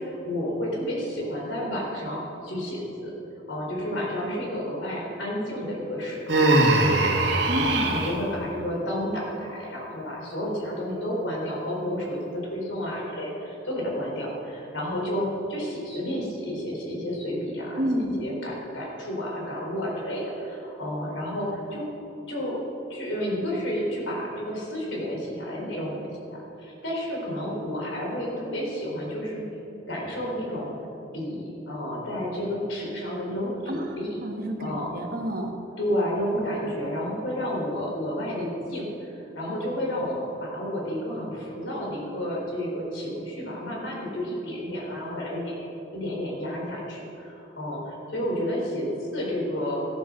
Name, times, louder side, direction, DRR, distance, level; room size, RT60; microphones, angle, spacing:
voice 1, 0.0-3.1 3.5-7.1 7.6-21.8 22.3-22.6 22.9-29.4 29.9-30.7 31.1-34.2 34.6-34.9 35.8-49.8, equal, 80° left, -2 dB, 3.9 m, -31 dB
Human voice, 6.3-8.2, right 2 dB, 70° right, 1.8 m, -21 dB
voice 2, 7.5-8.0 17.7-18.2 33.7-35.5, equal, 45° right, 1 dB, 1.5 m, -30 dB
14.5 x 10.0 x 6.5 m, 2.9 s
head